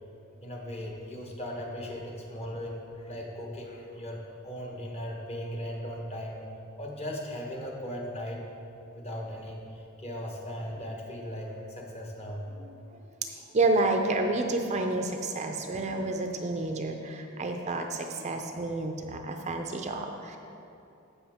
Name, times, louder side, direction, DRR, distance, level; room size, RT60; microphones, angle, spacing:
voice 1, 0.4-6.4 6.8-8.4 9.0-12.4, equal, 30° left, 0 dB, 1.2 m, -38 dB
voice 2, 12.5-20.4, right 2 dB, 35° right, 4 dB, 0.5 m, -30 dB
15.0 x 5.6 x 3.6 m, 2.7 s
head